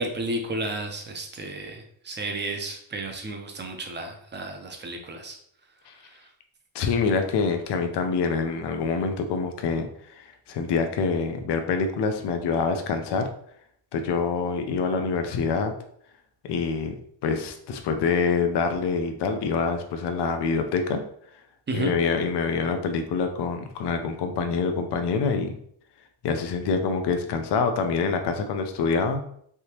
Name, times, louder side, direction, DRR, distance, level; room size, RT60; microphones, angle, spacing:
voice 1, 0.0-5.4 6.0-6.3 21.7-21.9, right 2 dB, 25° right, 4 dB, 0.6 m, -32 dB
voice 2, 6.7-9.9 10.1-13.3 13.9-15.7 16.5-16.9 17.2-21.0 21.7-25.6 26.2-29.2, left 5 dB, 65° left, 6 dB, 0.6 m, -26 dB
3.4 x 2.8 x 2.9 m, 0.66 s
cardioid pair, 135°, 43 cm